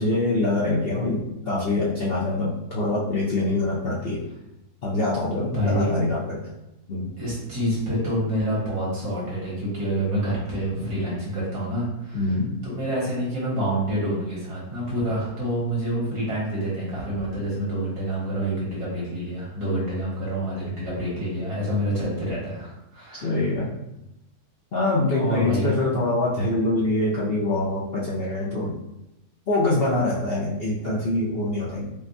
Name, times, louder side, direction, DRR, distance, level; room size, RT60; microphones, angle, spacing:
voice 1, 0.0-4.2 4.8-6.5 6.9-7.1 12.1-12.6 23.1-23.7 24.7-28.8 29.5-31.9, left 2 dB, 55° left, -6 dB, 0.7 m, -24 dB
voice 2, 5.5-5.9 7.2-12.2 12.6-23.4 25.1-25.7, right 1 dB, 80° right, -7 dB, 2.2 m, -27 dB
5.1 x 2.2 x 2.7 m, 0.89 s
omnidirectional pair, 1.6 m